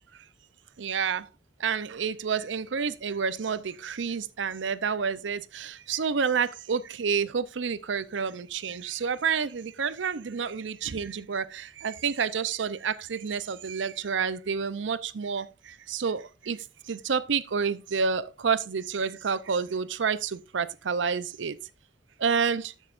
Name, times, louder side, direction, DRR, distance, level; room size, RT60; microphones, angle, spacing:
voice 1, 0.8-1.2 1.6-15.5 15.9-16.6 16.9-21.6 22.2-22.7, right 6 dB, 80° right, 0.6 m, -29 dB
14.0 x 6.4 x 2.5 m
head